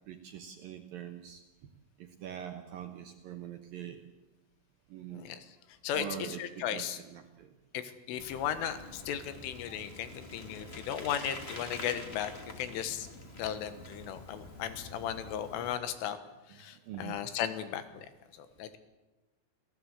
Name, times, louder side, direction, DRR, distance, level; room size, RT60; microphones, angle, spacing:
voice 1, 0.1-1.4 2.0-4.0 4.9-5.3 5.9-7.5 8.1-8.2 13.4-13.6 16.5-17.2, right 9 dB, 70° right, 6 dB, 2.2 m, -44 dB
voice 2, 5.1-5.5 5.8-6.1 6.4-7.0 7.7-12.3 12.6-13.1 13.4-16.2 16.5-18.1 18.4-18.8, left 10 dB, 85° left, 11 dB, 4.0 m, -36 dB
Bicycle, 8.2-15.7, left 1 dB, 40° left, 0.9 m, -47 dB
27.5 x 17.0 x 8.3 m, 1.1 s
omnidirectional pair, 5.6 m